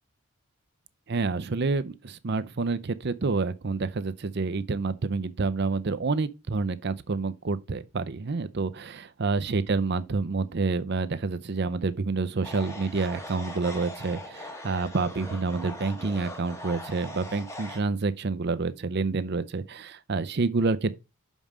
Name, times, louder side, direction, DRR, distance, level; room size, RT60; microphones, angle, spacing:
voice 1, 1.1-20.9, right 4 dB, 50° right, 0.6 m, -28 dB
sound 1, 12.4-17.8, left 1 dB, 15° left, 1.2 m, -41 dB
6.1 x 5.4 x 5.0 m
head